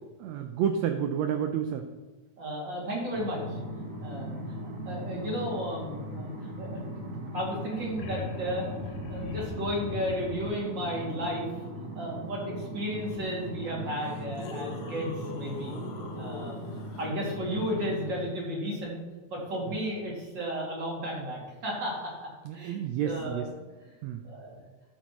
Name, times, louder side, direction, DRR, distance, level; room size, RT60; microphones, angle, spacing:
voice 1, 0.2-1.9 22.4-23.5 24.0-24.2, right 8 dB, 75° right, 7 dB, 1.7 m, -30 dB
voice 2, 2.4-3.6 4.0-4.6 4.9-6.8 7.3-8.7 9.1-11.5 11.9-15.8 16.2-16.6 17.0-19.0 19.3-23.5 23.8-23.9 24.2-24.6, equal, 40° right, -3 dB, 2.9 m, -34 dB
sound 1, 3.1-18.2, right 1 dB, 60° right, 0.8 m, -39 dB
sound 2, 7.3-7.4 7.5-10.7 13.2-13.3 13.9-17.0 19.5-19.6, left 5 dB, 80° left, 2.3 m, -42 dB
13.0 x 8.8 x 3.0 m, 1.2 s
omnidirectional pair, 3.5 m